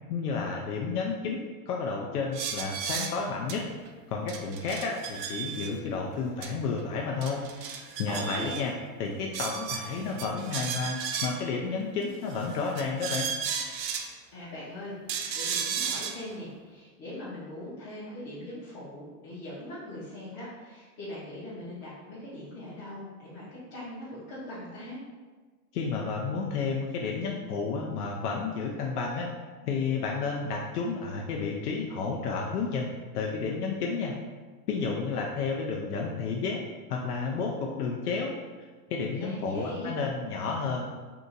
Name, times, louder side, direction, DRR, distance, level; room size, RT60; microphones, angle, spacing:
voice 1, 0.1-3.7 4.1-7.4 8.0-8.7 9.0-13.3 25.7-29.3 29.6-34.2 34.7-36.6 36.9-38.4 38.9-40.9, left 4 dB, 65° left, 0 dB, 0.6 m, -31 dB
sound 1, 2.3-3.2 3.5-3.6 3.9-4.0 4.3-5.7 6.4-6.5 6.8-6.9 7.2-8.6 9.3-11.5 12.3-14.1 15.1-16.2, right 7 dB, 85° right, 0.6 m, -34 dB
voice 2, 8.1-8.6 14.3-25.0 39.1-39.9, left 1 dB, 25° left, -10 dB, 0.7 m, -41 dB
2.8 x 2.5 x 3.8 m, 1.4 s
supercardioid pair, 145°, 49 cm